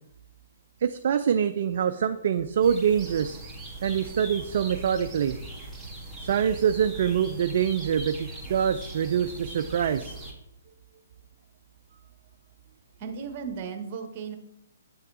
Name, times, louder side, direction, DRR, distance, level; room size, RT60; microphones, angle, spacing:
voice 1, 0.8-3.4 3.8-5.4 6.2-10.2, right 8 dB, 55° right, 8 dB, 0.4 m, -25 dB
sound 1, 2.6-10.3, right 2 dB, 5° right, 1.8 m, -40 dB
voice 2, 13.0-14.4, right 6 dB, 40° right, 5 dB, 1.3 m, -35 dB
8.4 x 6.5 x 2.7 m, 0.83 s
figure-of-eight pair, 130°, 0 cm